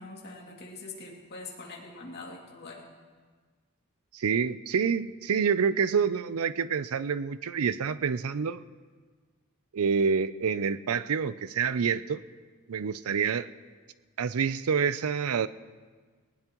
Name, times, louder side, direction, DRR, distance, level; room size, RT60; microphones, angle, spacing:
voice 1, 0.0-2.9, left 3 dB, 50° left, -1 dB, 2.5 m, -43 dB
voice 2, 4.1-8.6 9.7-12.2 12.7-13.5 14.2-15.5, right 6 dB, 75° right, 15 dB, 0.5 m, -27 dB
19.5 x 19.0 x 3.0 m, 1.5 s
head